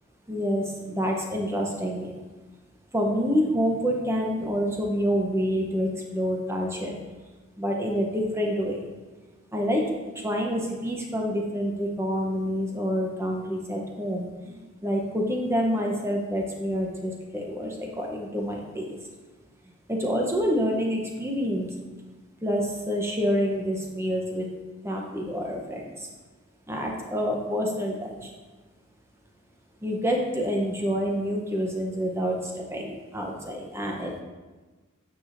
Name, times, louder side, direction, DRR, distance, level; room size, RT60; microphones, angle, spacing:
voice 1, 0.3-2.1 2.9-6.9 7.6-8.8 9.5-9.8 10.2-19.0 19.9-21.7 22.4-24.5 24.8-25.9 26.7-28.3 29.8-34.2, equal, 10° right, 0 dB, 0.6 m, -27 dB
9.0 x 4.8 x 2.5 m, 1.3 s
head